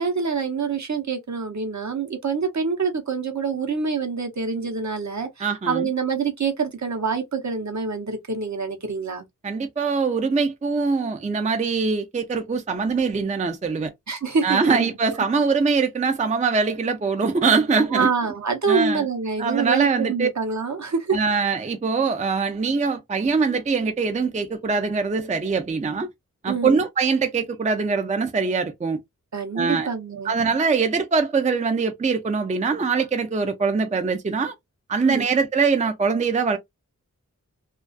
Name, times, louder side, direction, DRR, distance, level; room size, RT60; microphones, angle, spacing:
voice 1, 0.0-9.3 14.1-14.9 17.9-21.2 26.5-26.8 29.3-30.3 35.0-35.3, right 5 dB, 60° right, 0.7 m, -26 dB
voice 2, 5.4-5.9 9.4-13.9 14.4-18.1 18.7-19.1 19.4-20.3 21.1-26.1 26.4-29.0 29.6-29.9 30.2-34.5 34.9-36.6, right 4 dB, 25° right, 0.4 m, -23 dB
2.3 x 2.3 x 2.3 m
wide cardioid pair, 55°, 33 cm